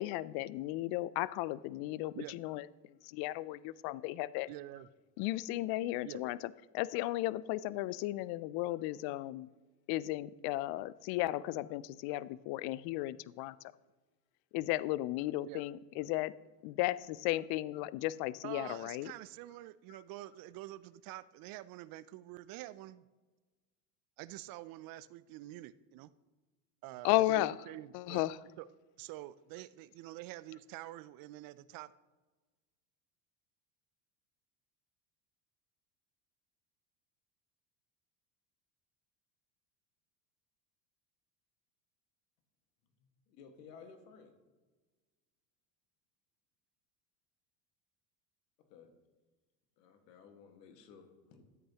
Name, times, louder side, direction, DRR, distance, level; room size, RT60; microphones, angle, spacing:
voice 1, 0.0-2.7 3.0-4.5 5.2-6.4 6.7-9.5 9.9-13.6 14.5-16.4 16.6-19.1 27.0-27.6 27.9-28.4, left 16 dB, 50° left, 19 dB, 0.5 m, -34 dB
voice 2, 4.5-4.9 6.0-6.2 15.5-15.6 18.4-23.0 24.2-26.1 26.8-28.2 28.6-28.7 29.0-31.9, right 16 dB, 45° right, 17 dB, 0.5 m, -47 dB
voice 3, 43.0-44.3 48.7-48.9 49.8-51.4, left 6 dB, 75° left, 5 dB, 1.8 m, -56 dB
13.0 x 8.1 x 2.9 m, 1.2 s
hypercardioid pair, 80°, 49 cm